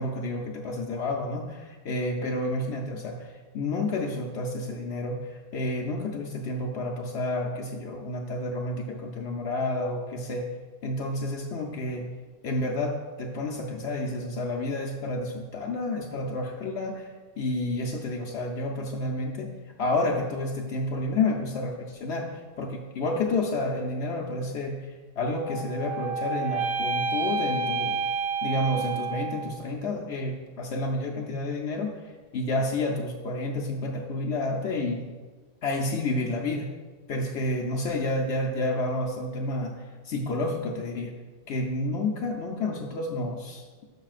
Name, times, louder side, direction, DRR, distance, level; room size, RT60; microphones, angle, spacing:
voice 1, 0.0-10.5 10.8-12.1 12.4-17.1 17.4-28.0 28.4-35.0 35.6-36.7 37.1-41.1 41.5-43.7, left 2 dB, 80° left, 0 dB, 1.0 m, -30 dB
sound 1, 25.4-29.7, right 4 dB, 70° right, 0.9 m, -29 dB
11.5 x 5.6 x 2.5 m, 1.3 s
omnidirectional pair, 1.1 m